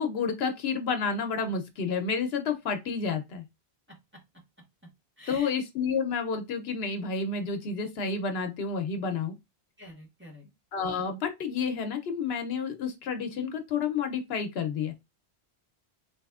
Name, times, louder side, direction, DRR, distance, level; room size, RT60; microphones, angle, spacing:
voice 1, 0.0-3.4 5.3-9.3 10.7-14.9, left 5 dB, 75° left, 0.9 m, -30 dB
voice 2, 3.9-4.2 5.2-5.5 9.8-10.5, left 1 dB, 10° right, 1.3 m, -48 dB
4.0 x 2.9 x 2.4 m
omnidirectional pair, 1.1 m